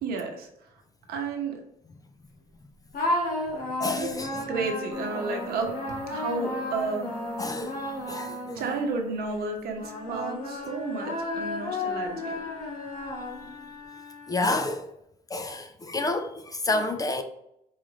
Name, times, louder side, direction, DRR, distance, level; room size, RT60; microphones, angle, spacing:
voice 1, 0.0-0.5 1.1-1.6 4.0-4.1 4.5-5.7 6.1-7.1 8.5-12.4, right 4 dB, 65° right, 1.0 m, -32 dB
sound 1, 2.9-9.2 9.8-13.7, left 1 dB, 55° left, 1.4 m, -33 dB
voice 2, 3.8-4.5 7.4-7.7 8.1-8.6 14.3-14.9 15.3-17.2, left 2 dB, 20° left, 0.3 m, -29 dB
sound 2, 4.9-9.3, left 1 dB, 25° right, 1.1 m, -42 dB
Wind instrument woodwind instrument, 9.7-14.6, left 5 dB, 85° left, 0.8 m, -46 dB
4.8 x 2.5 x 3.0 m
cardioid pair, 110°, 17 cm